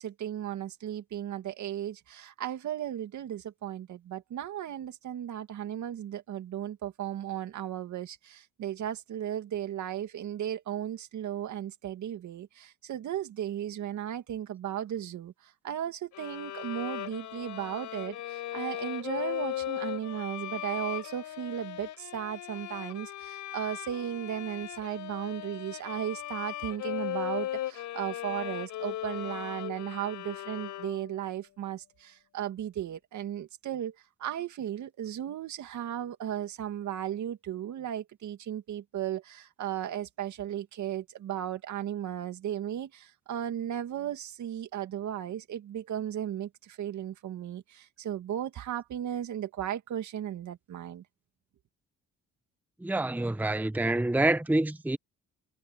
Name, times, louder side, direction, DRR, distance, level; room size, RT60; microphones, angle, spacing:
voice 1, 0.0-33.9 34.2-51.0, right 10 dB, 70° right, 2.4 m, -35 dB
sound 1, 16.1-31.2, left 13 dB, 80° left, 5.1 m, -38 dB
voice 2, 52.8-55.0, right 2 dB, 5° right, 0.9 m, -27 dB
cardioid pair, 90°, 30 cm